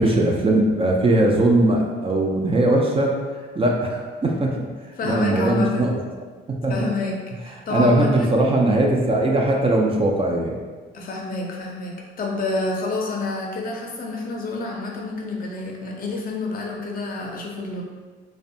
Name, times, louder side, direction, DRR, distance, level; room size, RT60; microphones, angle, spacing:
voice 1, 0.0-3.1 3.5-4.6 5.0-6.0 6.5-6.9 7.7-10.6, right 1 dB, 30° right, 0 dB, 0.4 m, -20 dB
voice 2, 5.0-5.9 6.7-8.3 10.9-17.8, left 3 dB, 45° left, -1 dB, 0.5 m, -28 dB
2.5 x 2.1 x 2.6 m, 1.4 s
cardioid pair, 90°, 20 cm